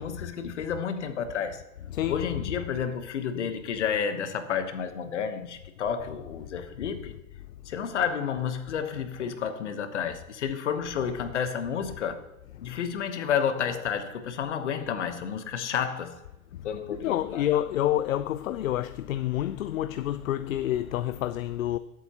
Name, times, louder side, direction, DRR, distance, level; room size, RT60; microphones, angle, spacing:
voice 1, 0.0-1.6 2.1-7.1 7.6-12.2 12.6-16.2 16.6-17.4, left 7 dB, 50° left, 1.2 m, -30 dB
voice 2, 16.9-21.8, left 12 dB, 70° left, 0.5 m, -28 dB
18.0 x 8.1 x 2.9 m
hypercardioid pair, 180°, 43 cm